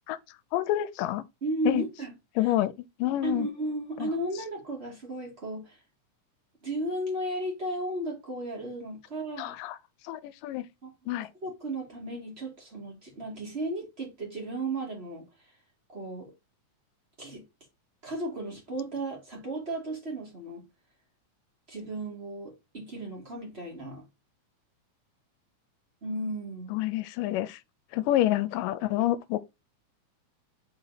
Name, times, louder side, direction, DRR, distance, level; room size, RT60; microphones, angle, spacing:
voice 1, 0.5-1.2 1.6-1.8 2.4-2.7 3.0-3.5 4.0-4.1 9.4-9.8 10.0-10.7 11.1-11.3 26.7-27.6 27.9-29.4, left 14 dB, 80° left, 2.1 m, -28 dB
voice 2, 1.4-2.1 2.4-2.5 3.2-5.8 6.6-9.6 10.8-10.9 11.4-15.3 15.9-16.3 17.2-17.4 18.0-20.6 21.7-24.0 26.0-26.8, right 1 dB, 25° right, 1.8 m, -34 dB
5.8 x 4.1 x 4.0 m
omnidirectional pair, 3.9 m